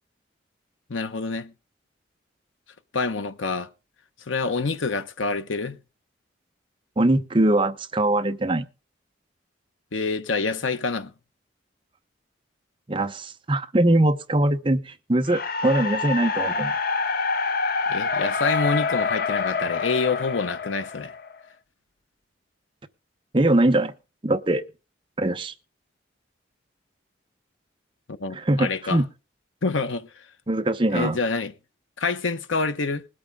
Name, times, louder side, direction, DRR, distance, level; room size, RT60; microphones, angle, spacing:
voice 1, 0.9-1.5 2.9-3.7 4.3-5.8 9.9-11.1 17.9-21.1 28.2-29.0 29.6-30.1 30.9-31.5 32.0-33.1, left 4 dB, 85° left, 0.9 m, -27 dB
voice 2, 7.0-8.6 12.9-16.7 23.3-23.9 24.2-24.6 25.2-25.5 28.3-29.1 30.5-31.2, right 1 dB, 25° right, 0.7 m, -22 dB
sound 1, 15.3-21.4, left 4 dB, 50° left, 0.6 m, -26 dB
20.5 x 8.7 x 3.5 m
head